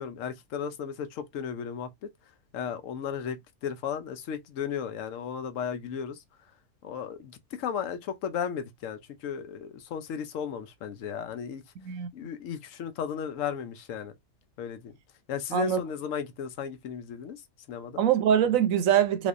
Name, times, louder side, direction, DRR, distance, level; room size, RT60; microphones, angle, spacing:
voice 1, 0.0-2.1 2.5-6.2 6.8-11.6 12.1-14.1 14.6-15.0 15.3-17.4 17.7-18.0, left 8 dB, 75° left, 1.0 m, -35 dB
voice 2, 11.8-12.1 15.5-15.8 18.0-19.3, right 9 dB, 80° right, 1.0 m, -23 dB
3.5 x 3.1 x 2.5 m
omnidirectional pair, 1.4 m